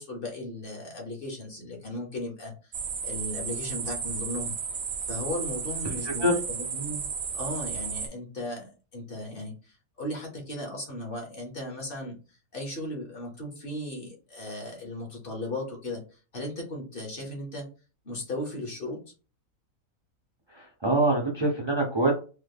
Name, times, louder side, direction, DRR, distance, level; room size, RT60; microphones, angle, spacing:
voice 1, 0.0-2.7 3.0-4.5 5.1-7.0 7.3-17.7 18.0-19.0, left 1 dB, 45° left, 0 dB, 1.0 m, -36 dB
sound 1, 2.7-8.1, right 6 dB, 70° right, 1.1 m, -33 dB
voice 2, 20.6-22.1, right 2 dB, 45° right, 0 dB, 0.3 m, -24 dB
3.1 x 2.1 x 3.4 m, 0.35 s
omnidirectional pair, 1.5 m